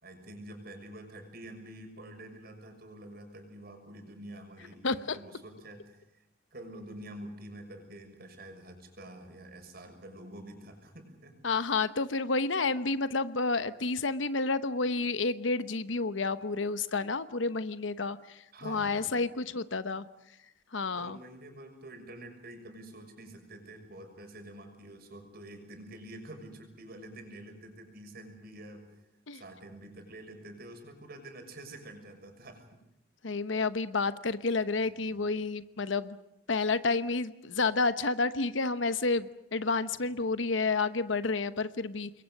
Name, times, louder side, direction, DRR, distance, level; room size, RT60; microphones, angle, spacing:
voice 1, 0.0-6.2 6.5-11.3 18.5-19.1 21.0-29.0 29.3-32.7 35.0-35.2 39.9-40.5, right 1 dB, 55° right, 4 dB, 6.4 m, -47 dB
voice 2, 4.8-5.2 11.4-20.1 20.7-21.2 29.3-29.4 33.2-36.2 36.5-42.1, left 3 dB, 75° left, 13 dB, 1.0 m, -30 dB
27.5 x 22.5 x 6.6 m, 0.88 s
head